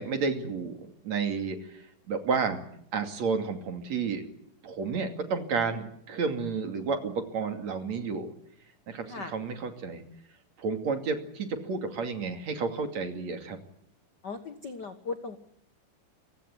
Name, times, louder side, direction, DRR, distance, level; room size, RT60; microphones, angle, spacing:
voice 1, 0.0-2.6 2.9-4.2 4.6-8.3 8.9-10.0 10.6-13.6, right 5 dB, 55° right, 6 dB, 3.6 m, -31 dB
voice 2, 14.2-15.4, left 4 dB, 65° left, 9 dB, 1.0 m, -37 dB
29.0 x 16.5 x 9.5 m, 0.72 s
omnidirectional pair, 4.0 m